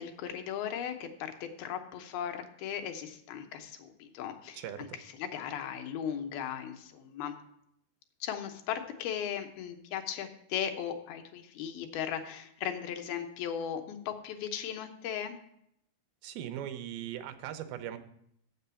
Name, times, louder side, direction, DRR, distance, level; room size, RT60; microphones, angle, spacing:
voice 1, 0.0-7.4 8.2-15.4, left 9 dB, 90° left, 5 dB, 2.8 m, -37 dB
voice 2, 16.2-18.0, right 10 dB, 90° right, 9 dB, 2.6 m, -39 dB
7.5 x 6.5 x 6.9 m, 0.74 s
omnidirectional pair, 4.2 m